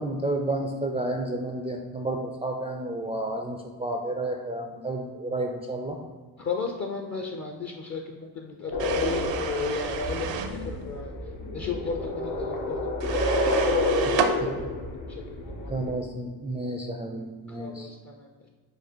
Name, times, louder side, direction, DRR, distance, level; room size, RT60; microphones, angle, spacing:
voice 1, 0.0-6.0 14.1-14.2 14.4-14.7 15.7-17.9, right 2 dB, 15° right, 2 dB, 0.3 m, -31 dB
voice 2, 6.4-10.4 10.7-11.1 11.5-14.4 15.4-15.7 17.6-18.5, left 4 dB, 35° left, 3 dB, 0.5 m, -34 dB
sound 1, 8.7-15.9, left 1 dB, 80° left, 1.2 m, -29 dB
sound 2, 8.8-10.6 13.0-14.4, right 7 dB, 70° right, 0.6 m, -30 dB
4.7 x 2.4 x 4.4 m, 1.4 s
supercardioid pair, 70°, 46 cm